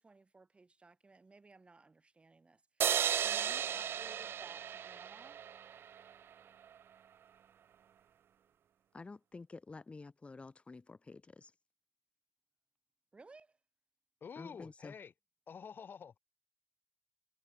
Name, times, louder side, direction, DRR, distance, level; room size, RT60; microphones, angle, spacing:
voice 1, 0.0-5.4 13.1-13.6, right 3 dB, 30° right, 5.2 m, -59 dB
sound 1, 2.8-6.1, right 9 dB, 85° right, 0.4 m, -35 dB
voice 2, 8.9-11.5 14.4-14.9, left 3 dB, 30° left, 2.3 m, -50 dB
voice 3, 14.2-15.1 15.5-16.2, left 6 dB, 65° left, 4.0 m, -48 dB
wide cardioid pair, 110°, 4 cm